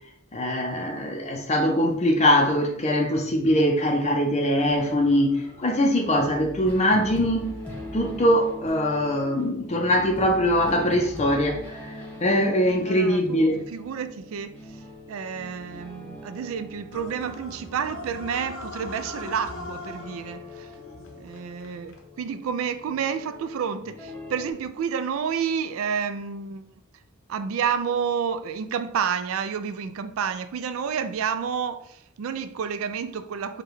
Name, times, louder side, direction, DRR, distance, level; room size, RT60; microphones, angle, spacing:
voice 1, 0.3-7.6 7.9-11.9 12.2-13.7, equal, 30° left, 0.5 m, -22 dB
sound 1, 4.7-24.5, left 1 dB, 10° left, 1.0 m, -42 dB
voice 2, 12.9-14.5 15.1-20.7 21.2-26.6 27.3-33.6, right 7 dB, 70° right, 0.3 m, -30 dB
sound 2, 16.9-22.0, left 2 dB, 70° left, 0.8 m, -40 dB
5.0 x 2.2 x 4.6 m
head